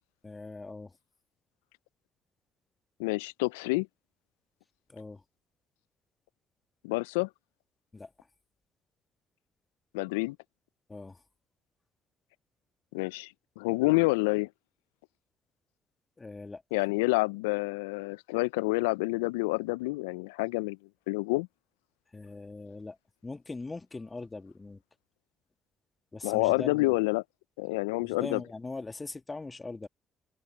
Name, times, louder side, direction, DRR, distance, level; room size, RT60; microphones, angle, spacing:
voice 1, 0.2-1.0 4.9-5.2 7.9-8.1 10.9-11.2 16.2-16.6 22.1-23.0 23.2-24.8 26.1-27.0 28.0-29.9, left 3 dB, 25° left, 1.7 m, -41 dB
voice 2, 3.0-3.9 6.8-7.3 9.9-10.4 12.9-14.5 16.7-20.8 21.1-21.5 26.2-27.2 27.6-28.4, left 24 dB, 85° left, 0.3 m, -28 dB
open air
hypercardioid pair, 50°, 0 cm